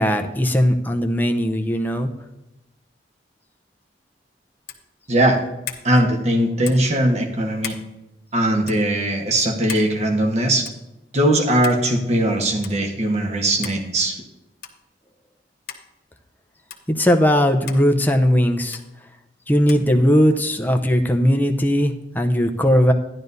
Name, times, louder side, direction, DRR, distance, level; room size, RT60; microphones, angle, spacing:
voice 1, 0.0-2.1 16.9-18.8 19.5-22.9, equal, 10° left, 4 dB, 0.6 m, -18 dB
sound 1, 4.6-4.9 5.6-5.9 6.6-6.9 7.6-7.9 8.6-8.8 9.7-9.9 10.7-10.9 11.6-11.8 12.6-12.8 13.6-13.8 14.6-14.8 15.7-15.8 16.7-16.8 17.7-17.8 18.7-18.9 19.7-19.9, left 9 dB, 60° left, 1.1 m, -35 dB
voice 2, 5.1-5.4 5.8-7.8 8.3-10.7 11.1-14.2, right 1 dB, 40° right, 2 dB, 1.2 m, -20 dB
12.0 x 11.0 x 2.7 m, 0.95 s
head